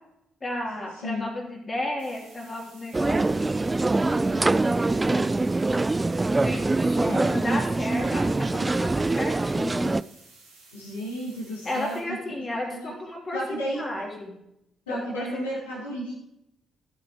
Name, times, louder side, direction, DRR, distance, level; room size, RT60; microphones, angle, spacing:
voice 1, 0.4-3.6 4.3-5.5 6.2-9.9 11.6-14.3 14.9-15.5, left 1 dB, 30° left, -1 dB, 3.4 m, -33 dB
voice 2, 0.9-1.3 7.0-7.2 10.7-12.0 12.4-12.9 13.3-14.0 14.9-16.1, equal, 80° left, -6 dB, 2.5 m, -33 dB
sound 1, 2.0-12.0, right 3 dB, 75° right, 3.4 m, -53 dB
sound 2, 2.9-10.0, right 2 dB, 20° right, 0.3 m, -24 dB
15.5 x 8.8 x 3.1 m, 0.83 s
figure-of-eight pair, 40°, 0 cm